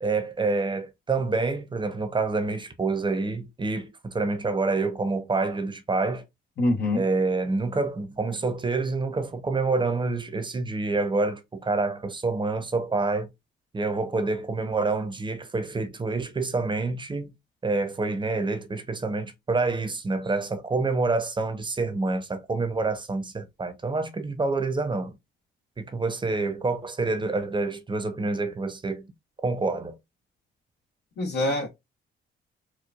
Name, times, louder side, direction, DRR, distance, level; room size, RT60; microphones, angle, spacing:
voice 1, 0.0-6.2 6.9-13.3 13.7-17.3 17.6-25.2 25.8-29.1 29.4-29.9, right 3 dB, 25° right, 0.8 m, -27 dB
voice 2, 6.6-7.0 31.2-31.7, left 1 dB, 60° left, 1.0 m, -24 dB
4.5 x 2.3 x 2.4 m
cardioid pair, 90°, 20 cm